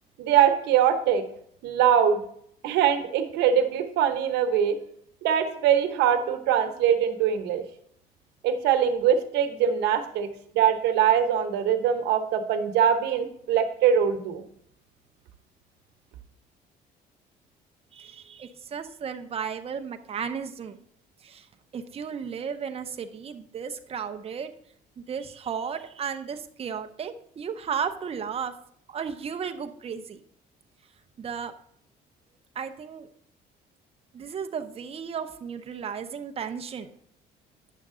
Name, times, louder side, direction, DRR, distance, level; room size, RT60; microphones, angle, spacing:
voice 1, 0.2-1.2 1.6-2.2 2.6-4.8 5.2-7.6 8.4-10.3 10.5-14.4, right 8 dB, 85° right, 7 dB, 1.0 m, -22 dB
voice 2, 17.9-20.8 21.2-24.5 25.0-28.5 28.9-30.2 31.2-31.5 32.5-33.1 34.1-36.9, right 7 dB, 35° right, 7 dB, 0.7 m, -34 dB
9.2 x 6.5 x 3.7 m, 0.67 s
cardioid pair, 110°, 17 cm